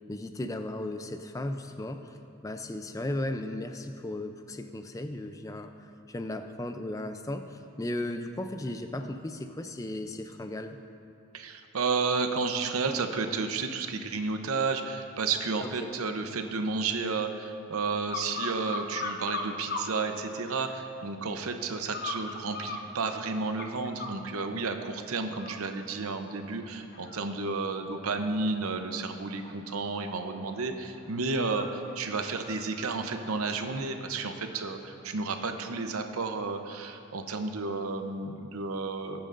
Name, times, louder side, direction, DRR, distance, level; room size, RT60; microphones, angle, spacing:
voice 1, 0.1-10.8 15.6-15.9, left 1 dB, 15° left, 7 dB, 0.4 m, -36 dB
voice 2, 11.3-39.2, right 4 dB, 85° right, 6 dB, 0.7 m, -32 dB
sound 1, 18.1-19.9 20.4-21.0 21.9-24.2 24.7-24.9 25.3-34.6 35.0-35.1, left 3 dB, 45° left, 0.8 m, -41 dB
20.0 x 8.9 x 2.6 m, 2.6 s
head